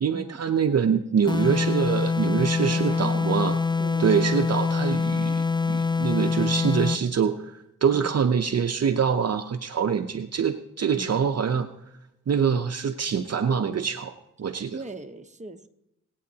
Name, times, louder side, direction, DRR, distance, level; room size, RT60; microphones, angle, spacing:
voice 1, 0.0-3.6 4.0-7.5 7.8-11.7 12.3-14.1 14.4-14.8, right 7 dB, 50° right, 7 dB, 0.7 m, -25 dB
sound 1, 1.3-7.1, left 4 dB, 15° left, 0.4 m, -25 dB
voice 2, 2.7-4.1 7.9-8.2 11.0-11.3 14.7-15.7, right 2 dB, 20° right, 6 dB, 0.9 m, -39 dB
22.5 x 8.6 x 2.8 m, 0.83 s
cardioid pair, 65°, 32 cm